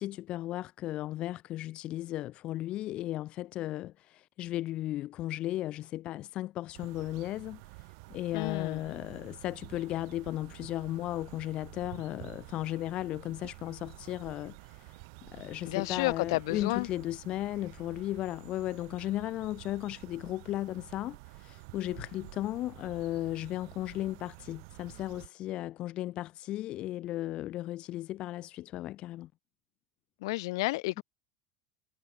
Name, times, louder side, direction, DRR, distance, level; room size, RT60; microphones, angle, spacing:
voice 1, 0.0-7.6 8.1-15.0 15.3-29.3, left 14 dB, 40° left, 1.7 m, -35 dB
sound 1, 6.7-25.3, right 32 dB, 65° right, 6.2 m, -50 dB
voice 2, 8.3-8.8 15.6-16.9 30.2-31.0, left 21 dB, 75° left, 2.8 m, -31 dB
supercardioid pair, 135°, 3 cm